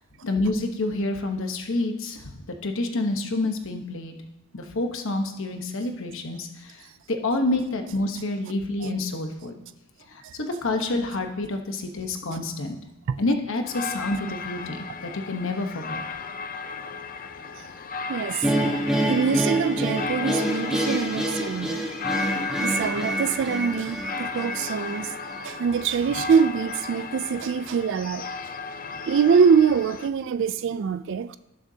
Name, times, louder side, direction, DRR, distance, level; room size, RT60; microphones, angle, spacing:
voice 1, 0.2-4.1 4.5-6.8 7.1-9.5 10.4-12.8 13.2-16.0, left 2 dB, 60° left, 1.1 m, -28 dB
sound 1, 13.6-30.1, left 5 dB, 40° left, 0.5 m, -35 dB
voice 2, 18.1-18.5 19.1-21.9 22.6-25.1 25.4-28.3 29.1-31.4, right 6 dB, 55° right, 0.3 m, -24 dB
sound 2, 18.4-25.5, right 1 dB, 5° right, 1.1 m, -27 dB
18.0 x 6.9 x 2.8 m
head